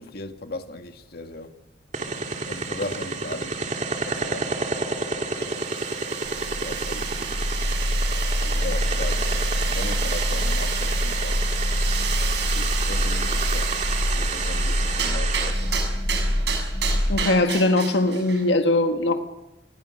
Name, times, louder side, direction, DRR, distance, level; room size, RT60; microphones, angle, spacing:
voice 1, 0.0-1.5 2.5-3.6 4.0-4.6 5.1-5.5 6.6-7.4 8.4-11.4 12.5-13.9 14.2-15.8, left 2 dB, 60° left, 2.0 m, -37 dB
sound 1, 1.9-15.5, right 4 dB, 40° right, 3.0 m, -30 dB
sound 2, 5.3-18.5, right 7 dB, 70° right, 6.5 m, -32 dB
sound 3, 6.3-17.2, left 1 dB, 20° left, 0.8 m, -25 dB
voice 2, 17.1-19.2, left 2 dB, 85° left, 1.7 m, -21 dB
29.5 x 21.5 x 6.6 m
head